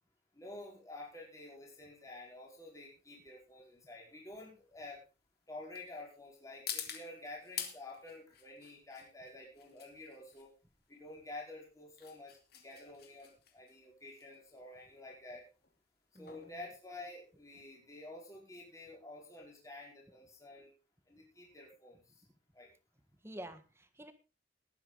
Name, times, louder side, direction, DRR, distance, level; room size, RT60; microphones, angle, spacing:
voice 1, 0.3-5.0 5.5-10.5 10.9-15.4 16.2-20.7 21.1-22.2 22.5-22.7, left 2 dB, 20° left, -2 dB, 5.2 m, -50 dB
sound 1, 1.0-17.7, left 9 dB, 60° left, 2.7 m, -49 dB
voice 2, 16.1-16.7 23.2-24.1, right 1 dB, 15° right, 10 dB, 1.5 m, -49 dB
20.0 x 9.7 x 4.0 m, 0.31 s
head